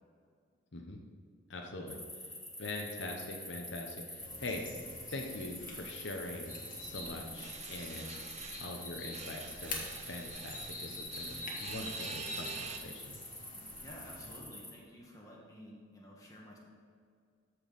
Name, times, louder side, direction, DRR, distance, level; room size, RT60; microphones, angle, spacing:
voice 1, 1.5-2.0 2.6-4.7 5.1-6.5 6.8-8.2 8.6-13.2, left 2 dB, 65° left, 2 dB, 0.9 m, -43 dB
sound 1, 1.9-14.7, left 1 dB, ahead, 1.0 m, -47 dB
sound 2, 4.2-14.4, left 2 dB, 45° left, 1.5 m, -46 dB
sound 3, 7.4-8.7 9.1-12.8, right 5 dB, 35° right, 0.6 m, -46 dB
voice 2, 13.8-16.6, equal, 15° left, -3 dB, 1.7 m, -52 dB
13.5 x 4.6 x 5.3 m, 2.2 s
head